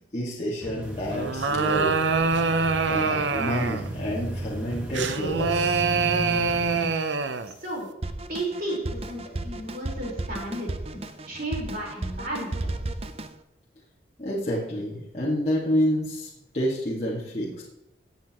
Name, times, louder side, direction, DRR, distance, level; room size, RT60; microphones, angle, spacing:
voice 1, 0.1-1.9 2.9-5.8 14.2-16.3 16.5-17.6, equal, 35° left, -7 dB, 2.0 m, -28 dB
sound 1, 0.6-6.9, right 1 dB, 10° right, 1.8 m, -35 dB
sound 2, 1.1-3.9 4.9-7.5, right 4 dB, 75° right, 0.7 m, -25 dB
Drum kit, 8.0-13.4, right 2 dB, 35° right, 0.6 m, -34 dB
voice 2, 8.3-10.7 11.3-12.5, right 1 dB, 50° right, -3 dB, 4.5 m, -33 dB
16.0 x 8.1 x 3.0 m, 0.90 s
head